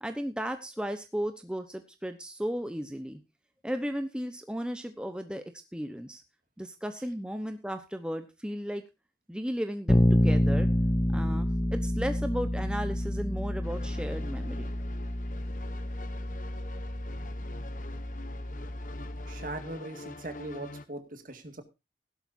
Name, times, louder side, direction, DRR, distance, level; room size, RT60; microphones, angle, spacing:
voice 1, 0.0-3.2 3.6-5.4 5.7-6.2 6.6-8.8 9.3-10.7 11.1-14.7, equal, 5° right, 7 dB, 1.0 m, -35 dB
Bass guitar, 9.9-19.7, left 1 dB, 15° left, 0.6 m, -29 dB
sound 1, 13.6-20.9, left 2 dB, 45° left, 1.1 m, -46 dB
voice 2, 19.3-21.6, right 2 dB, 50° right, 8 dB, 2.0 m, -40 dB
16.0 x 12.0 x 2.7 m, 0.25 s
head